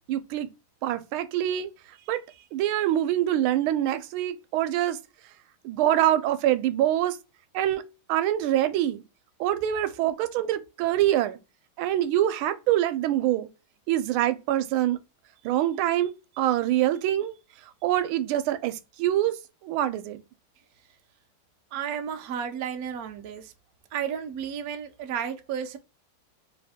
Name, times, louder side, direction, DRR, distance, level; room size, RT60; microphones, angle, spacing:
voice 1, 0.1-0.5 0.8-1.7 2.1-2.2 2.5-5.0 5.6-7.2 7.5-7.8 8.1-9.0 9.4-11.4 11.8-13.5 13.9-15.0 15.4-17.4 17.8-19.3 19.6-20.2, right 12 dB, 90° right, 1.4 m, -25 dB
voice 2, 21.7-23.5 23.9-25.8, right 8 dB, 65° right, 0.9 m, -32 dB
3.3 x 2.7 x 3.5 m
omnidirectional pair, 2.2 m